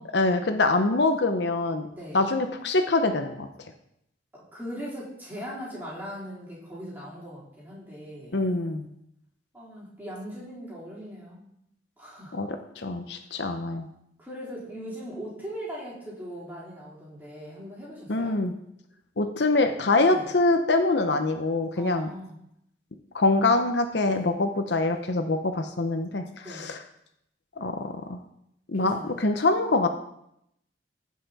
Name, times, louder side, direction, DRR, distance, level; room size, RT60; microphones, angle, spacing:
voice 1, 0.1-1.9 2.1-3.5 8.3-8.9 12.3-12.5 12.8-13.9 18.1-18.5 19.2-22.1 23.1-26.8 27.6-28.2 28.7-29.9, left 2 dB, 65° left, 6 dB, 0.8 m, -24 dB
voice 2, 1.9-2.2 4.3-8.4 9.5-11.5 12.0-12.5 14.2-18.4 20.1-20.2 21.8-22.4 24.1-24.3 26.4-26.7 28.7-29.2, equal, 10° right, -8 dB, 3.6 m, -40 dB
15.5 x 5.7 x 4.1 m, 0.77 s
head